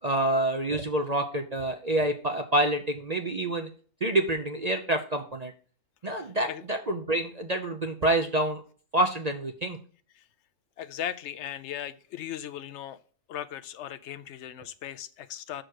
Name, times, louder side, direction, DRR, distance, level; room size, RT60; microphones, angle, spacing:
voice 1, 0.0-3.7 4.0-5.5 6.0-8.6 8.9-9.8, right 1 dB, 45° right, 4 dB, 0.5 m, -27 dB
voice 2, 6.1-6.6 10.1-10.2 10.8-13.0 13.3-15.6, left 10 dB, 65° left, 13 dB, 0.7 m, -38 dB
6.1 x 5.1 x 6.4 m, 0.41 s
omnidirectional pair, 1.7 m